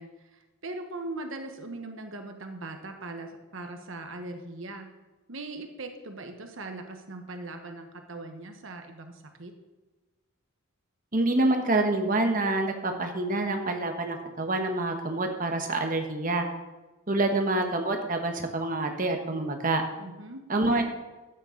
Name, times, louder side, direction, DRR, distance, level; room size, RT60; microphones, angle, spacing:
voice 1, 0.0-4.9 5.3-9.5 20.0-20.4, right 2 dB, 60° right, 5 dB, 1.2 m, -40 dB
voice 2, 11.1-16.5 17.1-19.8 20.5-20.8, right 2 dB, 40° right, 4 dB, 1.3 m, -27 dB
12.5 x 9.1 x 4.0 m, 1.2 s
head